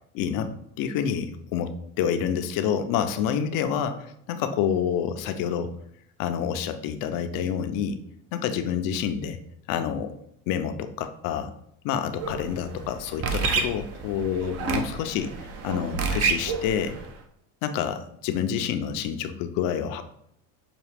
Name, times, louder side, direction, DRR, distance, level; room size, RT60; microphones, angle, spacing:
voice 1, 0.1-0.5 0.8-5.7 6.2-8.0 8.3-9.4 9.7-10.1 10.5-11.5 11.8-17.0 17.6-20.0, left 8 dB, 65° left, 8 dB, 0.6 m, -28 dB
sound 1, 12.2-17.1, right 4 dB, 40° right, 0.6 m, -29 dB
5.8 x 2.3 x 3.3 m, 0.71 s
cardioid pair, 125°, 36 cm